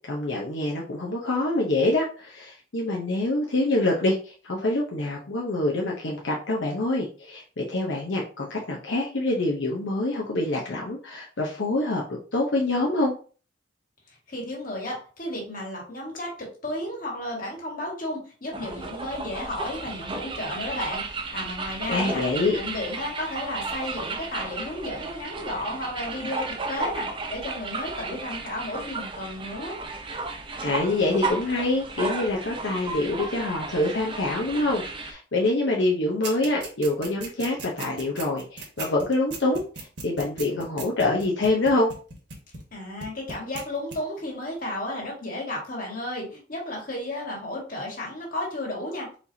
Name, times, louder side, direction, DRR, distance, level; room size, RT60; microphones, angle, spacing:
voice 1, 0.1-13.1 21.9-22.6 30.6-41.9, left 2 dB, 80° left, -2 dB, 0.8 m, -26 dB
voice 2, 14.3-21.0 21.3-22.2 22.5-29.8 42.7-49.1, left 1 dB, 50° left, -2 dB, 1.9 m, -33 dB
sound 1, 18.5-35.1, right 3 dB, 30° right, 0.7 m, -34 dB
sound 2, 36.2-42.7 43.0-43.6 43.9-44.0, right 4 dB, 65° right, 1.5 m, -37 dB
4.4 x 4.2 x 2.8 m, 0.38 s
head